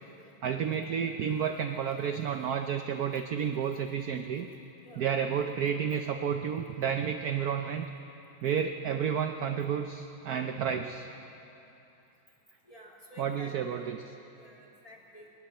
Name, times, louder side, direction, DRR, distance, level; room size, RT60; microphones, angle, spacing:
voice 1, 0.4-4.5 5.0-7.9 8.4-11.1 13.2-14.0, right 7 dB, 65° right, 7 dB, 1.0 m, -31 dB
voice 2, 12.7-13.9 14.4-15.3, equal, 15° left, -4 dB, 3.3 m, -51 dB
20.5 x 19.5 x 7.7 m, 2.9 s
omnidirectional pair, 2.3 m